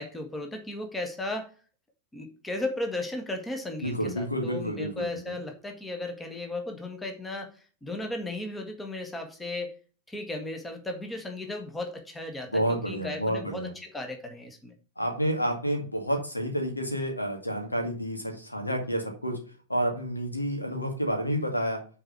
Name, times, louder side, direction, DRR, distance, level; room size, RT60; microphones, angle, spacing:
voice 1, 0.0-1.5 2.1-9.7 10.1-14.7, left 2 dB, 10° left, 4 dB, 1.6 m, -35 dB
voice 2, 3.8-5.1 12.5-13.7 15.0-19.3 19.7-21.8, equal, 85° left, 3 dB, 2.3 m, -29 dB
6.5 x 4.7 x 6.7 m, 0.38 s
figure-of-eight pair, 90°, 0 cm